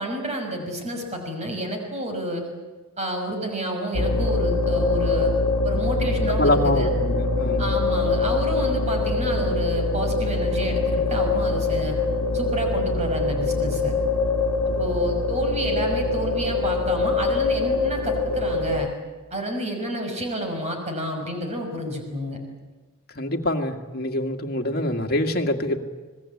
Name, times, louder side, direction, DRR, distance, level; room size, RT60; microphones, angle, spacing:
voice 1, 0.0-2.4 3.0-5.3 5.6-6.9 7.6-12.0 12.3-13.9 14.8-18.9 19.3-22.4, right 1 dB, 30° right, 3 dB, 5.7 m, -29 dB
sound 1, 3.9-18.9, left 3 dB, 80° left, 1.4 m, -23 dB
voice 2, 6.3-7.7 23.1-25.8, left 1 dB, 45° left, 4 dB, 2.1 m, -25 dB
26.5 x 20.0 x 8.6 m, 1.3 s
head